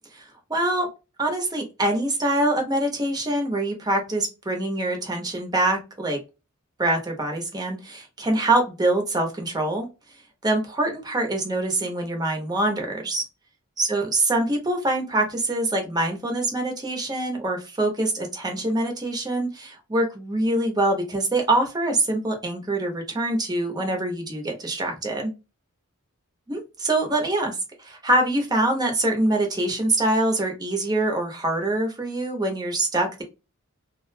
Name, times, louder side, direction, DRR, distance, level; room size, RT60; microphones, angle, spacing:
voice 1, 0.1-0.9 1.2-6.2 6.8-9.9 10.4-13.2 13.8-25.3 26.5-33.2, right 1 dB, 20° right, 2 dB, 0.7 m, -24 dB
2.4 x 2.1 x 2.5 m, 0.27 s
head